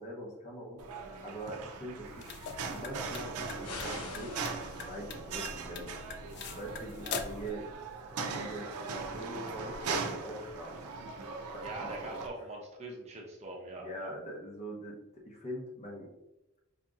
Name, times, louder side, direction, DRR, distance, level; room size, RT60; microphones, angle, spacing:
voice 1, 0.0-2.3 2.7-4.4 4.7-5.9 6.4-7.7 8.2-10.8 11.5-12.1 13.8-16.1, right 1 dB, 30° left, -1 dB, 0.7 m, -43 dB
sound 1, 0.8-12.3, right 4 dB, 85° right, 0.5 m, -40 dB
sound 2, 2.0-7.5, left 5 dB, 50° left, 0.3 m, -43 dB
sound 3, 3.6-5.2, left 3 dB, 90° left, 0.8 m, -44 dB
voice 2, 11.6-14.1, right 2 dB, 30° right, -1 dB, 0.6 m, -42 dB
4.9 x 2.8 x 2.4 m, 0.95 s
head